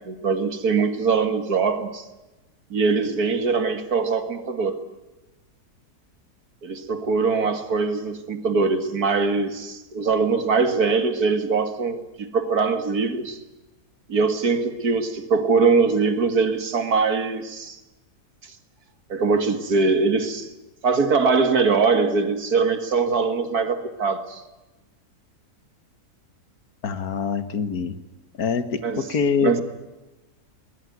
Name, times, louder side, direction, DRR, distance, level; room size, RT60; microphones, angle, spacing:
voice 1, 0.1-2.1 2.7-4.8 6.6-13.4 14.1-17.8 19.1-20.5 20.8-24.4 28.8-29.1 29.4-29.6, right 4 dB, 70° right, 9 dB, 2.4 m, -22 dB
voice 2, 26.8-27.9 28.4-29.5, left 6 dB, 70° left, 12 dB, 1.8 m, -24 dB
21.5 x 20.5 x 9.5 m, 1.0 s
omnidirectional pair, 1.7 m